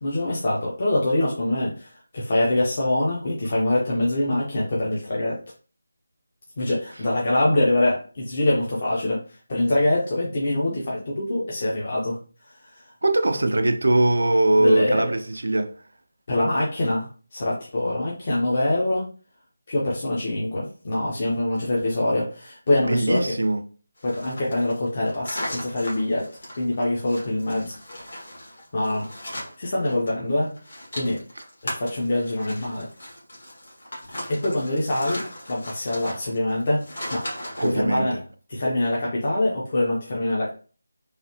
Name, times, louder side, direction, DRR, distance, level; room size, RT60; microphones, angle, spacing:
voice 1, 0.0-5.4 6.6-12.2 12.5-12.9 14.6-15.1 16.3-19.1 19.7-23.3 24.0-26.3 26.6-27.8 28.7-29.2 29.6-30.5 30.9-31.2 31.6-32.9 34.3-37.2 37.6-38.2 38.5-40.5, left 1 dB, 40° left, 0.8 m, -24 dB
voice 2, 13.0-15.7 22.9-23.6 37.6-38.1, right 1 dB, 70° right, 0.5 m, -21 dB
sound 1, 24.0-30.1 30.4-37.8, left 1 dB, 60° left, 1.4 m, -37 dB
3.2 x 2.3 x 2.8 m
figure-of-eight pair, 160°, 0 cm